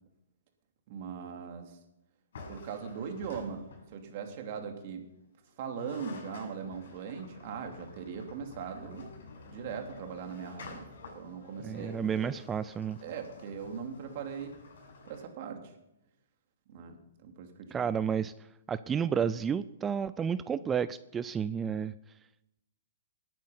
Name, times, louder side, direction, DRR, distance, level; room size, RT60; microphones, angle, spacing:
voice 1, 0.9-1.8 2.5-5.1 5.6-9.1 9.5-12.3 13.0-14.5 15.0-15.7 16.7-17.9, right 6 dB, 45° right, 4 dB, 2.9 m, -40 dB
sound 1, 2.3-4.1 5.5-5.6 5.7-15.2, left 3 dB, 70° left, 7.1 m, -50 dB
voice 2, 11.6-13.0 17.7-18.3 18.7-21.9, right 7 dB, 15° right, 15 dB, 0.4 m, -31 dB
19.0 x 9.3 x 5.8 m, 0.87 s
hypercardioid pair, 135°, 0 cm